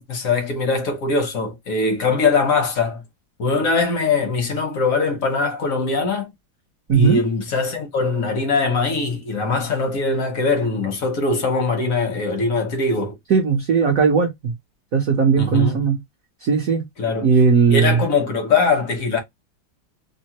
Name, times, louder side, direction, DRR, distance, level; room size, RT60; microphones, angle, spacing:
voice 1, 0.0-3.0 3.4-6.3 6.9-13.2 15.4-15.8 17.0-17.3 17.7-19.2, left 4 dB, 55° left, 0.9 m, -21 dB
voice 2, 6.9-7.2 13.3-14.5 14.9-16.0 16.4-16.9 17.2-18.0, right 5 dB, 60° right, 0.9 m, -17 dB
3.5 x 2.0 x 2.9 m
omnidirectional pair, 2.4 m